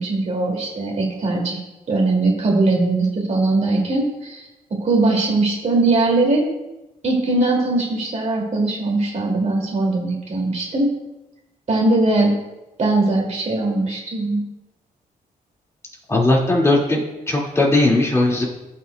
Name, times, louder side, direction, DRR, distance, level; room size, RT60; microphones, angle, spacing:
voice 1, 0.0-1.6 1.9-6.5 7.0-10.9 11.7-12.3 12.8-14.5, right 2 dB, 50° right, -1 dB, 2.6 m, -20 dB
voice 2, 16.1-17.0 17.3-18.4, left 2 dB, 20° left, -3 dB, 2.3 m, -17 dB
15.5 x 5.7 x 2.3 m, 0.98 s
cardioid pair, 85°, 15 cm